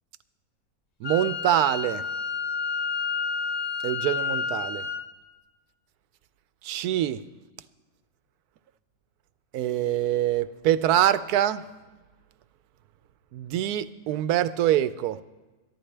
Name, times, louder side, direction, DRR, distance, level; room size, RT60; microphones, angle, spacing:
Wind instrument woodwind instrument, 1.0-5.0, left 5 dB, 45° left, 0.5 m, -30 dB
voice 1, 1.0-2.0 3.8-4.9 6.6-7.2 9.5-11.6 13.3-15.2, right 12 dB, 90° right, 1.1 m, -24 dB
22.5 x 11.0 x 3.3 m
omnidirectional pair, 1.6 m